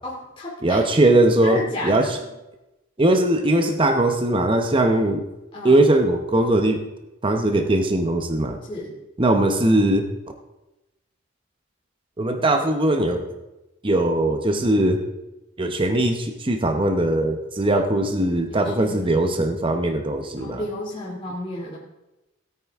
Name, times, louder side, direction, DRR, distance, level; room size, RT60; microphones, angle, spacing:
voice 1, 0.0-0.8 1.4-2.3 5.5-5.8 8.7-9.0 18.5-19.4 20.4-21.8, left 1 dB, 25° left, -6 dB, 2.5 m, -33 dB
voice 2, 0.6-2.2 3.0-5.3 5.6-6.8 7.2-8.6 9.2-10.0 12.2-13.2 13.8-15.0 15.6-20.6, right 1 dB, 25° right, 5 dB, 0.8 m, -20 dB
17.0 x 9.0 x 3.6 m, 1.0 s
head